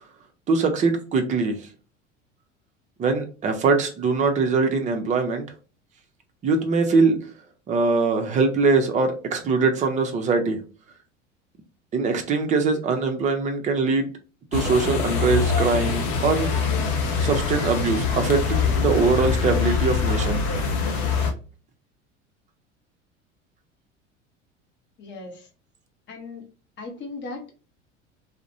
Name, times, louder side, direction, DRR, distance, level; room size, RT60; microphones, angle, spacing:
voice 1, 0.5-1.7 3.0-5.5 6.4-7.2 7.7-10.6 11.9-14.1 14.5-16.5 17.2-20.4, right 4 dB, 20° right, 5 dB, 0.5 m, -22 dB
sound 1, 14.5-21.3, left 5 dB, 60° left, 0.7 m, -24 dB
voice 2, 25.0-25.5 26.1-26.5 26.8-27.6, left 3 dB, 30° left, 3 dB, 0.7 m, -37 dB
2.4 x 2.0 x 2.7 m, 0.35 s
figure-of-eight pair, 75°, 37 cm